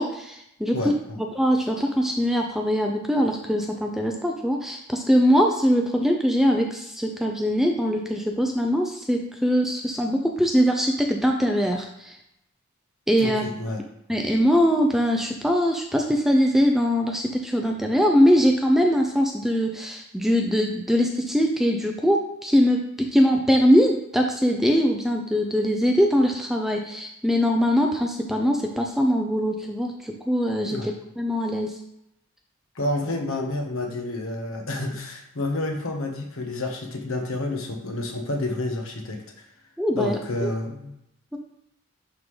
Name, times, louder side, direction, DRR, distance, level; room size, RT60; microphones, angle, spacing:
voice 1, 0.0-1.0 1.3-12.2 13.1-13.4 14.1-31.8 39.8-40.5 41.3-41.4, equal, ahead, 2 dB, 0.5 m, -22 dB
voice 2, 0.7-1.2 13.2-13.8 30.7-30.9 32.7-39.4 39.9-40.9, left 2 dB, 65° left, 2 dB, 1.2 m, -29 dB
11.0 x 3.7 x 3.3 m, 0.80 s
head